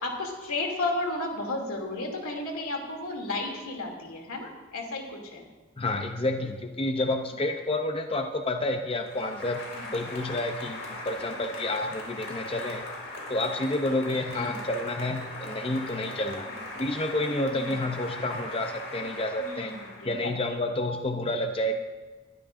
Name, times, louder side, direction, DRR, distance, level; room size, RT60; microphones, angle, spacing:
voice 1, 0.0-5.4 9.7-9.9 11.2-11.4 12.3-12.5 14.3-14.6 17.5-17.7 19.4-20.3, left 2 dB, 85° left, 1 dB, 2.7 m, -33 dB
voice 2, 5.8-9.6 9.9-12.8 13.3-16.5 16.8-19.7 20.0-21.7, left 1 dB, 25° left, 5 dB, 0.6 m, -29 dB
Applause, 9.0-20.5, left 2 dB, 70° left, 4.2 m, -39 dB
21.0 x 12.5 x 2.6 m, 1.3 s
head